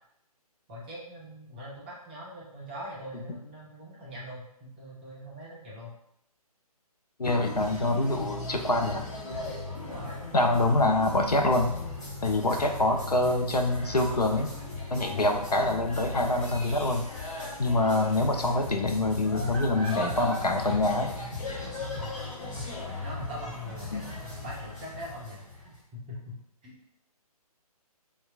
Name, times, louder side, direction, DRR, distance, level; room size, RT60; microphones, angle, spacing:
voice 1, 0.7-5.9 9.8-10.2 12.4-12.7 22.0-22.2 23.0-26.8, equal, 15° right, -5 dB, 0.5 m, -42 dB
voice 2, 7.2-9.1 10.3-11.7 12.2-14.5 14.9-17.0 17.6-21.1 23.9-24.0, left 2 dB, 85° left, 3 dB, 0.5 m, -25 dB
sound 1, 7.2-25.8, left 2 dB, 55° left, 1.0 m, -37 dB
4.1 x 2.2 x 2.4 m, 0.77 s
figure-of-eight pair, 140°, 20 cm